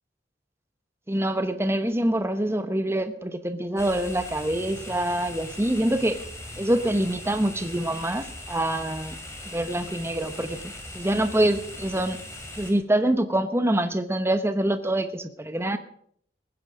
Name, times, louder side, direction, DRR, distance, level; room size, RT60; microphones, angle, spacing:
voice 1, 1.1-6.2 6.6-9.2 9.5-10.6 10.9-12.2 12.6-15.8, right 1 dB, 15° right, 10 dB, 0.9 m, -25 dB
sound 1, 3.8-12.7, left 1 dB, 15° left, 2.6 m, -40 dB
21.5 x 9.7 x 4.9 m, 0.65 s
head